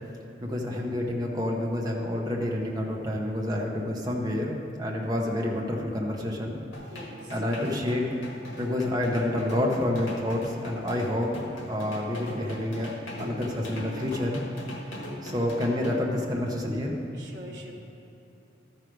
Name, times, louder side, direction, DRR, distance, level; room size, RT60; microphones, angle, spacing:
voice 1, 0.4-6.6 7.3-8.0 8.6-11.3 11.7-12.9 13.2-14.4 15.2-16.9, left 1 dB, 20° right, -2 dB, 0.9 m, -28 dB
sound 1, 6.7-16.0, left 1 dB, 85° left, 1.4 m, -40 dB
voice 2, 6.7-7.4 17.1-17.7, equal, 55° right, -1 dB, 1.3 m, -45 dB
13.0 x 4.7 x 5.0 m, 2.9 s
head